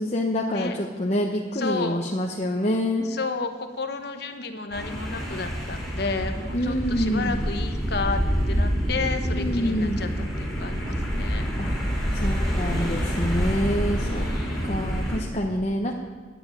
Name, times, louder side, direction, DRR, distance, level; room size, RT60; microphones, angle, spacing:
voice 1, 0.0-3.1 6.5-7.4 9.2-10.0 11.6-11.7 12.1-14.3 14.6-15.9, equal, 35° left, -1 dB, 0.9 m, -26 dB
voice 2, 1.5-2.0 3.0-8.2 8.5-11.4 12.7-13.2 13.9-14.7, left 4 dB, 60° left, 6 dB, 1.0 m, -32 dB
sound 1, 4.7-15.2, equal, ahead, 2.8 m, -27 dB
11.0 x 7.4 x 8.9 m, 1.5 s
head